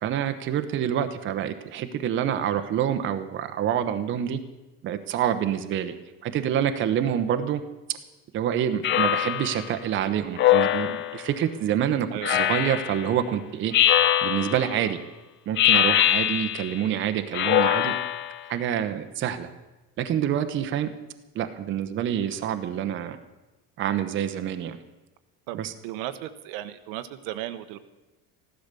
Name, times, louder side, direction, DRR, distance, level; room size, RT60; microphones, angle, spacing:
voice 1, 0.0-4.4 4.8-5.9 6.2-7.6 8.3-15.0 15.5-18.0 18.5-19.5 20.0-20.9 21.3-23.2 23.8-24.8 25.5-25.7, right 9 dB, 35° right, 8 dB, 0.9 m, -27 dB
Speech synthesizer, 8.8-9.6 10.4-11.3 12.2-13.0 13.7-14.7 15.6-16.8 17.3-18.4, left 12 dB, 35° left, 0.5 m, -22 dB
voice 2, 12.1-12.5 25.5-27.8, right 13 dB, 80° right, 10 dB, 1.0 m, -36 dB
15.0 x 12.0 x 6.8 m, 1.1 s
cardioid pair, 160°, 33 cm